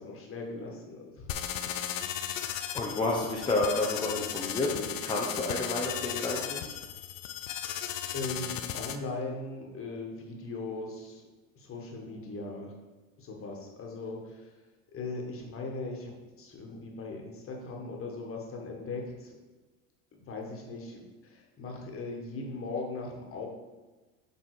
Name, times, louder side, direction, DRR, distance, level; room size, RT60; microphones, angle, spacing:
voice 1, 0.0-1.6 7.6-11.3 11.6-12.7 13.2-14.6 14.9-16.1 16.4-19.3 20.2-23.5, left 3 dB, 35° left, 1 dB, 1.7 m, -39 dB
sound 1, 1.3-9.0, left 10 dB, 85° left, 0.7 m, -36 dB
voice 2, 2.4-6.6, left 2 dB, 10° left, -3 dB, 0.9 m, -30 dB
7.6 x 3.9 x 5.0 m, 1.2 s
supercardioid pair, 105°, 38 cm